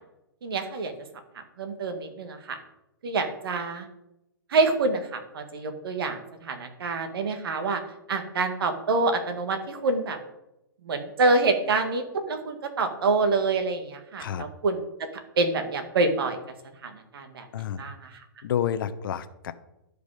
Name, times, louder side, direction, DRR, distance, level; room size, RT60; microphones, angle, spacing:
voice 1, 0.4-0.9 1.3-2.6 3.0-3.9 4.5-7.8 8.1-10.2 10.8-15.1 15.4-16.4 16.8-17.5 17.8-18.2, right 3 dB, 70° right, 7 dB, 1.8 m, -27 dB
voice 2, 18.4-19.5, left 9 dB, 60° left, 12 dB, 0.8 m, -29 dB
12.5 x 5.2 x 5.0 m, 0.89 s
hypercardioid pair, 135°, 13 cm